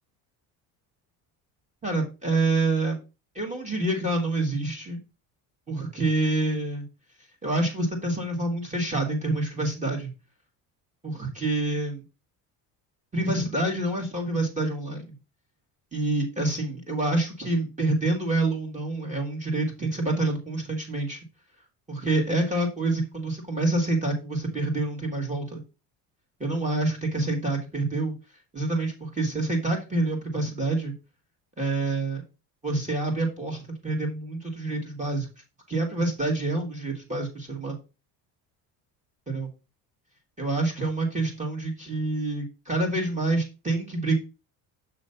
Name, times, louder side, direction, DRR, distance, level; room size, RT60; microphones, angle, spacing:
voice 1, 1.8-3.0 3.3-5.0 5.7-6.8 7.4-10.1 11.0-12.0 13.1-15.1 15.9-21.2 21.9-25.6 26.4-28.1 28.5-30.9 31.6-32.2 32.6-35.3 35.7-37.8 39.3-39.5 40.4-44.1, right 2 dB, 15° right, 2 dB, 1.6 m, -27 dB
6.8 x 3.1 x 5.5 m, 0.30 s
cardioid pair, 115°, 41 cm